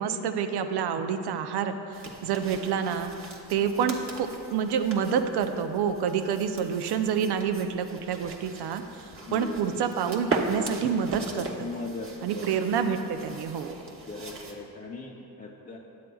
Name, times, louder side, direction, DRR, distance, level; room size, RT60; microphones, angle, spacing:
voice 1, 0.0-3.1 3.5-11.5 12.2-13.7, right 7 dB, 70° right, 8 dB, 0.6 m, -28 dB
sound 1, 1.9-14.6, right 3 dB, 30° right, 1.0 m, -39 dB
voice 2, 9.2-9.8 11.6-12.8 14.0-15.8, left 3 dB, 20° left, -3 dB, 0.6 m, -40 dB
9.5 x 7.4 x 2.3 m, 2.7 s
supercardioid pair, 65°, 41 cm